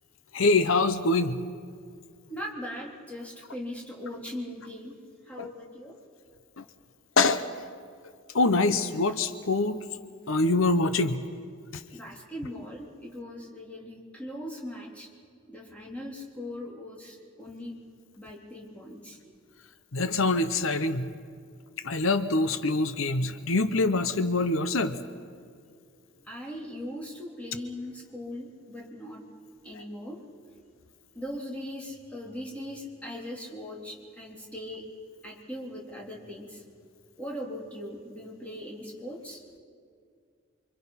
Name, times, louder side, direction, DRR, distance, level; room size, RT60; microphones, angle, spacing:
voice 1, 0.3-1.4 5.4-5.5 6.6-6.7 7.2-7.4 8.3-9.8 10.3-11.2 19.9-21.1 21.8-25.0, left 3 dB, 80° left, 11 dB, 0.9 m, -24 dB
voice 2, 2.3-5.0 5.2-6.0 11.9-15.1 15.5-17.7 18.2-19.2 26.2-29.2 29.6-30.2 31.1-34.8 35.2-36.6 37.2-39.4, left 1 dB, 5° left, -3 dB, 3.5 m, -39 dB
28.5 x 25.0 x 5.8 m, 2.2 s
head